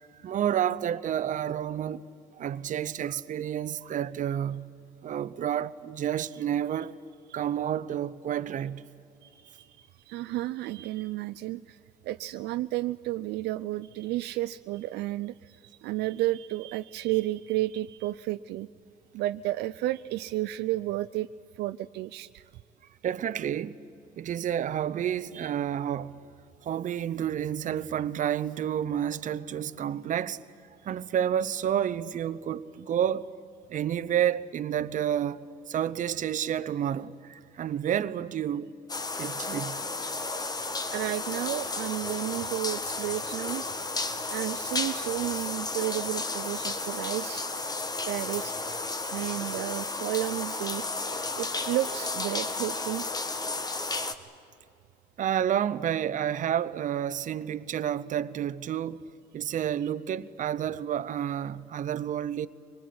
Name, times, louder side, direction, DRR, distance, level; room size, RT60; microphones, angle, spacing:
voice 1, 0.2-2.0 2.4-4.7 5.0-6.9 7.3-8.9 23.0-23.8 24.2-26.2 26.6-30.4 30.8-33.4 33.7-38.7 39.2-39.9 55.2-59.0 59.3-62.5, right 10 dB, 50° right, 0.8 m, -30 dB
voice 2, 9.2-11.8 12.0-18.7 19.1-21.3 21.6-22.4 40.5-43.6 44.3-47.4 48.1-48.7 49.1-50.8 51.4-53.1, right 16 dB, 80° right, 0.5 m, -32 dB
sound 1, 38.9-54.1, left 3 dB, 25° left, 1.4 m, -33 dB
24.0 x 20.0 x 9.5 m
cardioid pair, 110°, 17 cm